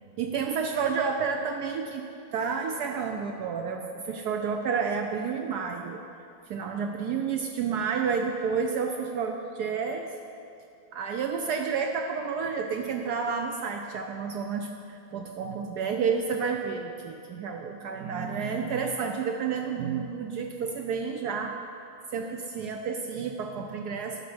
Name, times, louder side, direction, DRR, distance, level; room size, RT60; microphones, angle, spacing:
voice 1, 0.2-2.1 2.3-6.0 6.5-10.1 10.9-21.6 22.1-24.2, right 6 dB, 75° right, 3 dB, 0.9 m, -30 dB
11.0 x 4.1 x 6.1 m, 2.6 s
omnidirectional pair, 2.1 m